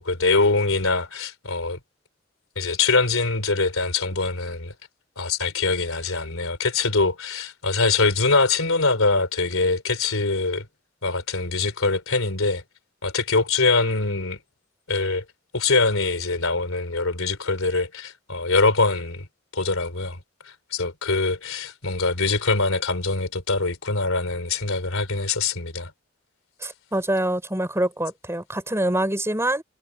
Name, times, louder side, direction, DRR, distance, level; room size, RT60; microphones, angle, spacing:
voice 1, 0.0-1.8 2.5-4.7 5.2-10.7 11.0-12.6 13.0-14.4 14.9-15.2 15.5-19.3 19.5-20.2 20.4-25.9, left 3 dB, 90° left, 3.3 m, -23 dB
voice 2, 26.6-29.6, right 1 dB, 15° right, 6.5 m, -25 dB
head